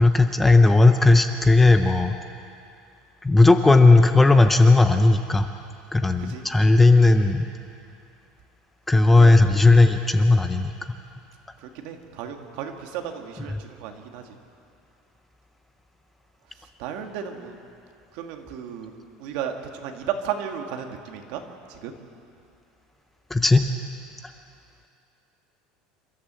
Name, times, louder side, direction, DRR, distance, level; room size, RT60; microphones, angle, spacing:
voice 1, 0.0-2.1 3.2-5.5 5.9-7.5 8.9-10.7 23.3-23.7, left 2 dB, 5° left, 7 dB, 0.6 m, -16 dB
voice 2, 9.2-9.8 11.6-14.4 16.6-17.6 18.1-18.9 19.2-21.4 21.7-21.9, right 8 dB, 60° right, 4 dB, 2.0 m, -34 dB
28.0 x 13.5 x 7.6 m, 2.6 s
cardioid pair, 175°, 2 cm